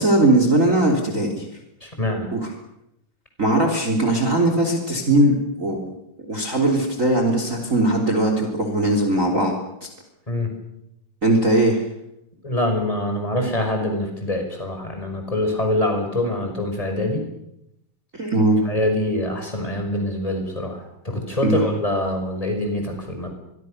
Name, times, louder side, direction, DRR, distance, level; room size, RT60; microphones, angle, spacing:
voice 1, 0.0-1.5 2.3-2.4 3.4-5.9 6.3-9.6 11.2-11.8 18.1-18.6 21.4-21.7, right 1 dB, 25° right, 4 dB, 3.7 m, -19 dB
voice 2, 1.8-2.3 10.3-10.5 12.4-17.2 18.6-23.3, left 1 dB, 10° left, 4 dB, 5.6 m, -24 dB
27.0 x 23.5 x 6.6 m, 0.84 s
omnidirectional pair, 3.8 m